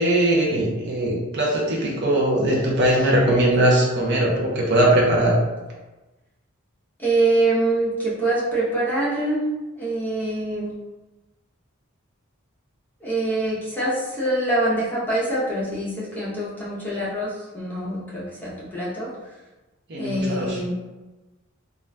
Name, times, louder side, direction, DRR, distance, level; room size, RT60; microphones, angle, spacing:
voice 1, 0.0-5.4 19.9-20.5, right 1 dB, 55° right, -3 dB, 0.6 m, -20 dB
voice 2, 7.0-9.4 9.8-10.8 13.0-19.1 20.0-20.7, right 2 dB, 10° left, -8 dB, 0.7 m, -24 dB
2.4 x 2.2 x 3.2 m, 1.1 s
head